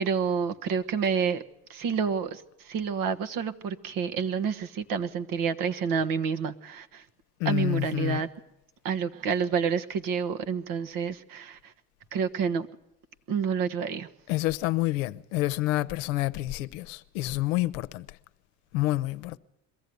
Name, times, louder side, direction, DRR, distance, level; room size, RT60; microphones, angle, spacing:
voice 1, 0.0-1.4 1.7-7.0 7.4-8.3 8.8-11.7 12.1-12.7 13.3-14.1, right 6 dB, 60° right, 1.4 m, -29 dB
voice 2, 7.4-8.2 14.3-18.1 18.7-19.4, left 17 dB, 85° left, 0.8 m, -28 dB
22.5 x 14.5 x 9.4 m
supercardioid pair, 85°, 38 cm